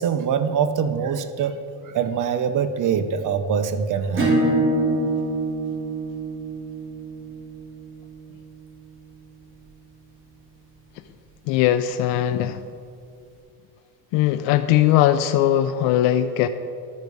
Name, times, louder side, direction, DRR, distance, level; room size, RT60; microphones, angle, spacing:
voice 1, 0.0-4.4, right 7 dB, 45° right, 10 dB, 0.7 m, -24 dB
Acoustic guitar / Strum, 4.1-9.4, right 1 dB, 30° right, 2.4 m, -26 dB
voice 2, 11.5-12.6 14.1-16.5, left 12 dB, 80° left, 9 dB, 0.5 m, -19 dB
12.5 x 4.7 x 5.3 m, 2.4 s
cardioid pair, 115°, 43 cm